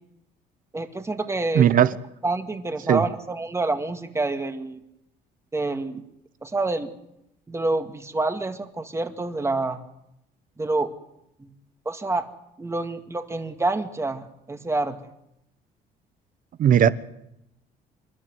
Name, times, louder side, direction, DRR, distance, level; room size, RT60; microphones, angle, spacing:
voice 1, 0.7-1.7 2.2-4.8 5.5-6.0 6.4-6.9 7.5-9.8 10.6-10.9 11.4-11.5 11.9-12.3 12.6-15.0, right 2 dB, 15° right, 2.1 m, -27 dB
voice 2, 1.5-1.9 2.9-3.0 16.6-16.9, right 9 dB, 55° right, 1.0 m, -16 dB
28.0 x 12.5 x 9.4 m
cardioid pair, 110°, 17 cm